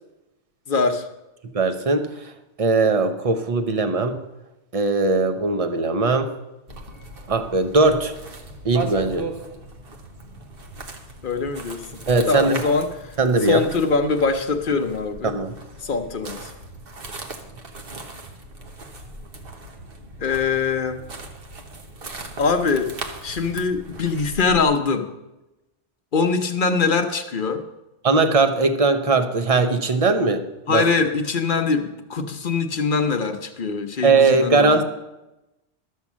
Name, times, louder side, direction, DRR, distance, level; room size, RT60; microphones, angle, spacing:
voice 1, 0.7-1.1 11.2-11.8 12.3-13.1 13.4-15.3 15.8-16.5 20.2-21.0 22.4-22.9 23.2-25.1 26.1-27.6 30.7-34.8, left 4 dB, 50° left, 6 dB, 1.0 m, -23 dB
voice 2, 1.4-2.1 2.6-4.2 4.7-6.3 7.3-8.1 8.6-9.3 12.1-12.6 13.2-13.6 15.2-15.5 28.0-30.8 34.0-34.8, right 3 dB, 35° right, 8 dB, 0.8 m, -19 dB
sound 1, 6.7-24.6, right 2 dB, 55° right, 1.4 m, -38 dB
12.5 x 6.5 x 7.3 m, 0.98 s
omnidirectional pair, 1.2 m